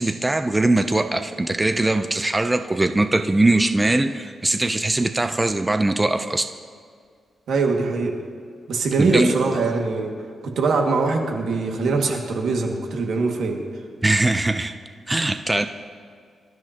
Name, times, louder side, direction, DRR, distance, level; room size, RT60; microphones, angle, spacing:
voice 1, 0.0-6.5 9.0-9.4 14.0-14.7 15.1-15.7, right 2 dB, 15° right, 8 dB, 0.6 m, -21 dB
voice 2, 7.5-8.2 8.7-10.1 10.4-13.6, right 3 dB, 80° right, 1 dB, 2.1 m, -22 dB
25.5 x 13.0 x 2.9 m, 2.2 s
cardioid pair, 100°, 0 cm